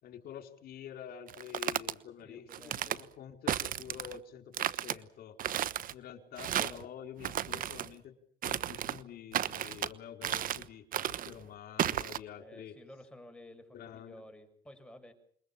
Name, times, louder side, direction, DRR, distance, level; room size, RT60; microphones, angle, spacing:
voice 1, 0.0-5.4 5.9-8.2 8.4-12.8 13.7-14.2, left 9 dB, 65° left, 6 dB, 4.7 m, -48 dB
sound 1, 1.3-1.9 2.5-3.0 3.5-4.2 4.5-5.0 5.4-5.9 6.4-6.8 7.2-7.9 8.4-9.0 9.3-9.9 10.2-10.7 10.9-11.3 11.8-12.2, right 10 dB, 55° right, 1.1 m, -33 dB
voice 2, 2.2-3.1 12.4-15.1, left 1 dB, 5° left, 6 dB, 6.5 m, -53 dB
27.5 x 22.0 x 7.3 m, 0.62 s
cardioid pair, 110°, 17 cm